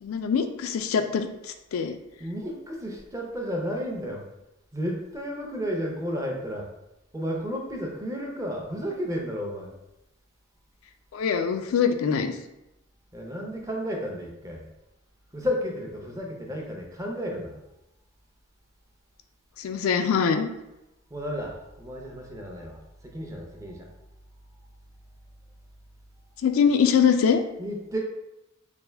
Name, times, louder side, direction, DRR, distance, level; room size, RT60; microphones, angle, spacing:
voice 1, 0.0-1.3 1.7-1.9 11.1-12.3 19.6-20.5 26.4-27.4, left 6 dB, 85° left, 7 dB, 0.3 m, -23 dB
voice 2, 2.2-4.2 4.7-6.7 7.1-9.7 13.1-14.7 15.3-17.6 21.1-22.8 23.1-23.9 27.6-28.0, equal, 15° right, 0 dB, 0.5 m, -32 dB
3.4 x 2.5 x 3.3 m, 0.90 s
head